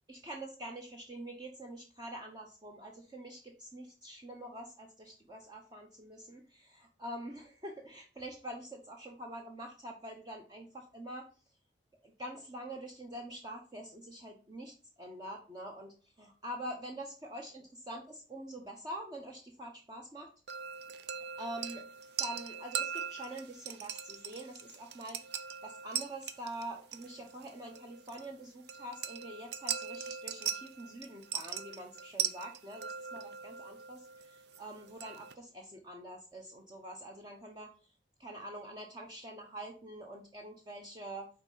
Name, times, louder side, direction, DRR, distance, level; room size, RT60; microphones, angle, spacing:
voice 1, 0.1-11.3 12.0-20.3 21.4-21.9 22.2-37.9 38.2-41.3, right 1 dB, 25° right, 1 dB, 0.9 m, -45 dB
sound 1, 20.5-35.3, right 8 dB, 65° right, 0.6 m, -41 dB
5.9 x 4.2 x 5.5 m, 0.36 s
head